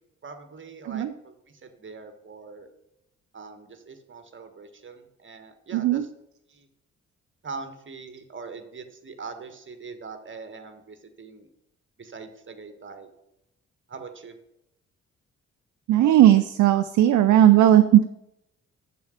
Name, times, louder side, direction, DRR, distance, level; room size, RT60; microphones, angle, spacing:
voice 1, 0.2-2.7 3.3-6.1 6.5-6.7 7.4-11.5 12.0-13.1 13.9-14.3, right 4 dB, 30° right, 7 dB, 1.5 m, -42 dB
voice 2, 5.7-6.1 15.9-18.0, right 12 dB, 50° right, 11 dB, 0.6 m, -17 dB
7.1 x 6.8 x 6.5 m, 0.84 s
figure-of-eight pair, 40°, 39 cm